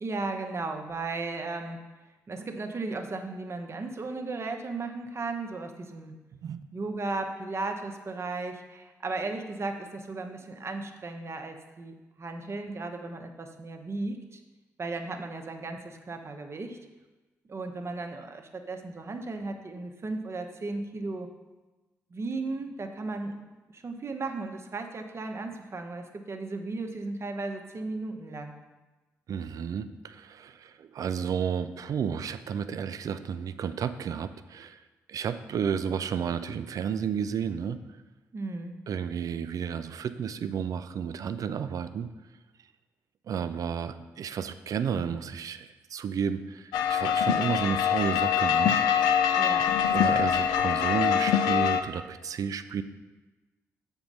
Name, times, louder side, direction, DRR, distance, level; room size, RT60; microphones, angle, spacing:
voice 1, 0.0-1.8 2.3-6.1 6.7-14.4 14.8-16.8 17.5-21.3 22.1-23.3 23.7-28.5 38.3-38.8 49.3-49.7, right 3 dB, 40° right, 5 dB, 1.0 m, -35 dB
voice 2, 6.3-6.6 29.3-34.8 35.1-37.8 38.9-42.1 43.3-48.8 49.9-52.8, right 7 dB, 60° right, 12 dB, 0.4 m, -32 dB
sound 1, 46.7-51.8, left 8 dB, 80° left, 0.4 m, -24 dB
7.1 x 4.5 x 5.4 m, 1.2 s
hypercardioid pair, 50°, 7 cm